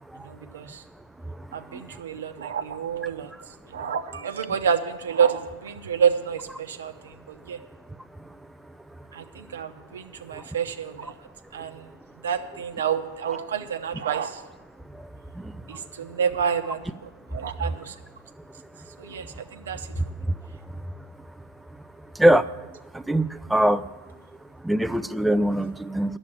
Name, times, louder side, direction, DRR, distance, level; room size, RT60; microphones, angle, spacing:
voice 1, 0.2-0.8 1.5-3.3 3.7-7.6 9.1-11.1 11.5-11.9 12.2-14.4 15.7-17.9 19.0-19.9, right 7 dB, 90° right, 8 dB, 0.8 m, -28 dB
voice 2, 23.1-23.8 24.7-26.2, right 1 dB, 5° right, 12 dB, 0.3 m, -21 dB
9.9 x 7.2 x 8.8 m, 1.1 s
hypercardioid pair, 120°, 0 cm